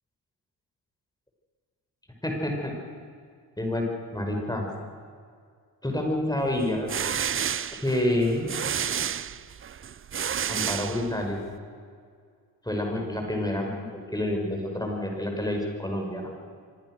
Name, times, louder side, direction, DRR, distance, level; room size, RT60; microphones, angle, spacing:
voice 1, 2.2-2.7 3.6-3.9 4.1-4.7 5.8-6.9 7.8-8.5 10.5-11.4 12.6-16.3, left 1 dB, 10° left, 1 dB, 6.0 m, -28 dB
sound 1, 6.6-11.5, right 8 dB, 25° right, 0.6 m, -31 dB
25.0 x 18.0 x 6.4 m, 2.1 s
hypercardioid pair, 40°, 50 cm